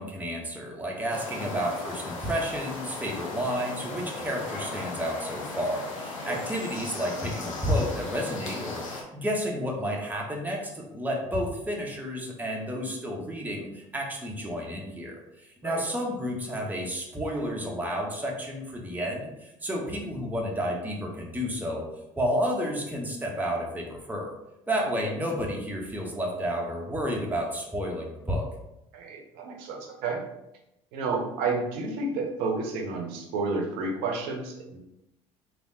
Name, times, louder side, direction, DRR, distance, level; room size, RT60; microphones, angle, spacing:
voice 1, 0.0-21.9 22.2-24.4 24.7-28.5, equal, 10° right, -1 dB, 0.9 m, -31 dB
sound 1, 1.1-9.0, left 3 dB, 80° left, 0.6 m, -37 dB
voice 2, 28.9-30.2 30.9-34.8, right 3 dB, 65° right, 1 dB, 0.8 m, -31 dB
3.4 x 2.7 x 2.7 m, 0.86 s
figure-of-eight pair, 60°, 17 cm